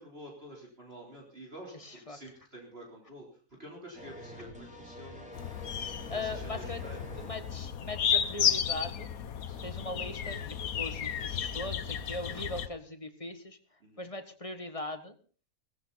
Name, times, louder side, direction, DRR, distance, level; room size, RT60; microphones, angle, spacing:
voice 1, 0.0-5.3 6.1-7.2 9.5-9.7 10.2-10.4 13.8-14.1, right 1 dB, 40° right, -1 dB, 4.1 m, -49 dB
voice 2, 1.7-2.2 6.1-6.8 7.2-9.1 9.6-13.6 14.0-15.2, left 2 dB, 25° left, 8 dB, 1.6 m, -40 dB
sound 1, 3.9-7.3, left 1 dB, 5° right, 4.0 m, -46 dB
sound 2, 5.3-12.7, left 8 dB, 70° left, 1.5 m, -33 dB
18.0 x 15.0 x 4.2 m, 0.39 s
omnidirectional pair, 1.6 m